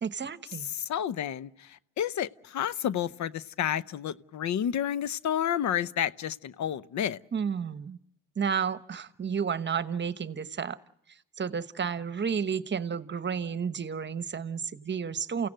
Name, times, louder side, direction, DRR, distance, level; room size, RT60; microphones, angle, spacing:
voice 1, 0.0-0.7 7.3-8.0 8.3-10.8 11.1-15.5, right 6 dB, 35° right, 1.2 m, -31 dB
voice 2, 0.7-7.2, left 10 dB, 70° left, 0.8 m, -30 dB
29.5 x 17.0 x 7.7 m
cardioid pair, 90°, 30 cm